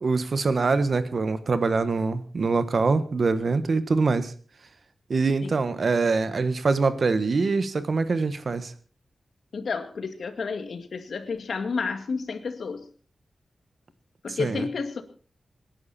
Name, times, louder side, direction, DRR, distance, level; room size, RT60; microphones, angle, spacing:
voice 1, 0.0-4.3 5.1-8.7 14.4-14.7, right 4 dB, 50° right, 12 dB, 1.4 m, -24 dB
voice 2, 9.5-12.9 14.2-15.0, left 5 dB, 75° left, 8 dB, 2.2 m, -31 dB
26.5 x 11.0 x 4.3 m, 0.39 s
wide cardioid pair, 150°, 0 cm